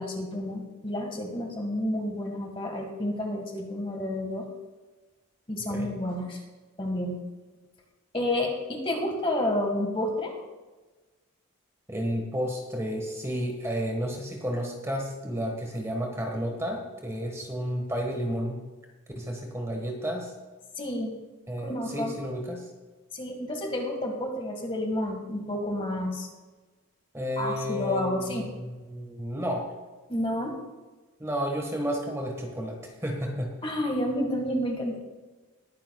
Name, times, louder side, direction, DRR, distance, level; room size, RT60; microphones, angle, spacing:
voice 1, 0.0-4.5 5.5-6.4 6.8-7.2 8.1-10.3 20.8-21.2 21.6-22.2 23.1-26.3 27.4-28.5 30.1-30.6 33.6-35.0, left 1 dB, 25° left, 2 dB, 1.8 m, -30 dB
voice 2, 11.9-18.6 19.1-20.3 21.5-22.6 27.1-29.7 31.2-33.5, equal, 15° right, 1 dB, 1.5 m, -32 dB
21.0 x 9.8 x 2.4 m, 1.2 s
head